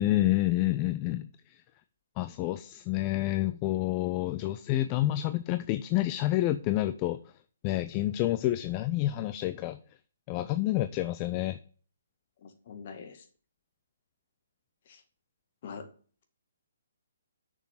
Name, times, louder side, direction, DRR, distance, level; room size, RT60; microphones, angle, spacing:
voice 1, 0.0-1.6 2.2-7.2 7.6-9.8 10.3-11.6, left 15 dB, 30° left, 11 dB, 0.5 m, -28 dB
voice 2, 12.4-13.2 14.9-15.0 15.6-15.9, left 6 dB, 45° left, 5 dB, 2.0 m, -44 dB
6.6 x 6.3 x 7.4 m, 0.42 s
figure-of-eight pair, 135°, 0 cm